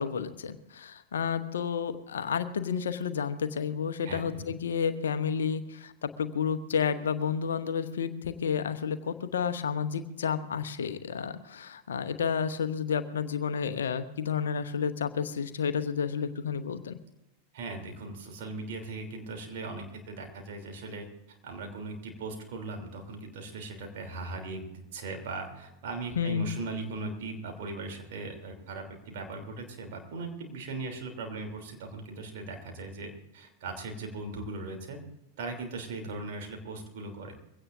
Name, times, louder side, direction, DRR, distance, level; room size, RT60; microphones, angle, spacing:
voice 1, 0.0-17.0 26.1-26.5, left 7 dB, 65° left, 9 dB, 0.9 m, -31 dB
voice 2, 4.0-4.5 17.5-21.1 21.4-24.6 24.9-35.0 35.4-37.4, right 3 dB, 55° right, 3 dB, 3.3 m, -39 dB
23.0 x 17.0 x 2.7 m, 0.93 s
figure-of-eight pair, 90°, 0 cm